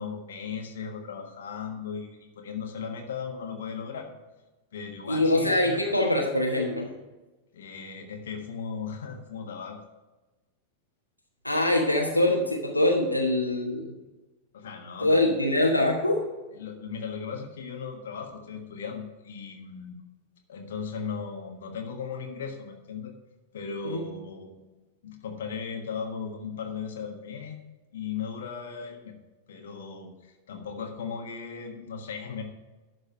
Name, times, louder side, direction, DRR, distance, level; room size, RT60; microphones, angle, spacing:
voice 1, 0.0-4.1 4.7-6.0 7.5-9.8 14.5-15.4 16.5-20.0 20.5-23.1 23.5-24.6 25.0-27.6 27.9-29.1 29.5-32.4, left 6 dB, 60° left, 3 dB, 1.4 m, -37 dB
voice 2, 5.1-6.9 11.4-13.9 15.0-16.2 23.8-24.0, left 1 dB, 90° left, 0 dB, 1.3 m, -24 dB
11.5 x 4.1 x 6.4 m, 1.1 s
figure-of-eight pair, 90°, 0 cm